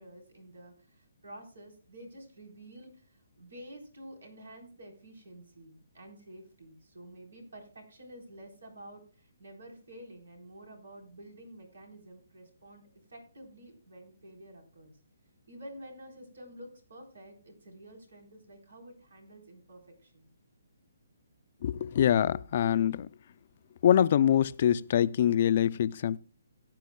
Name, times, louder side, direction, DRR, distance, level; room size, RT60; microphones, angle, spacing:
voice 1, 0.0-14.9 15.5-20.3, right 1 dB, 85° right, 4.0 m, -50 dB
voice 2, 21.6-23.1 23.8-26.2, left 10 dB, 40° left, 0.4 m, -24 dB
18.0 x 9.0 x 2.2 m
hypercardioid pair, 165°, 0 cm